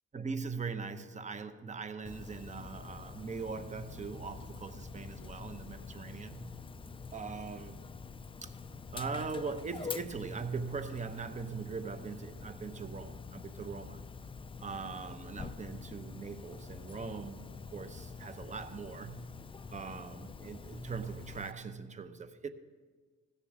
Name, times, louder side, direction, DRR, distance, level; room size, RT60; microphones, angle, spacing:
voice 1, 0.1-6.5 7.1-7.8 8.4-8.5 8.9-14.0 14.6-19.3 19.7-22.5, right 5 dB, 25° right, 0.8 m, -41 dB
Dog, 2.1-21.5, left 4 dB, 20° left, 0.4 m, -46 dB
15.5 x 6.8 x 6.0 m
cardioid pair, 90°, 30 cm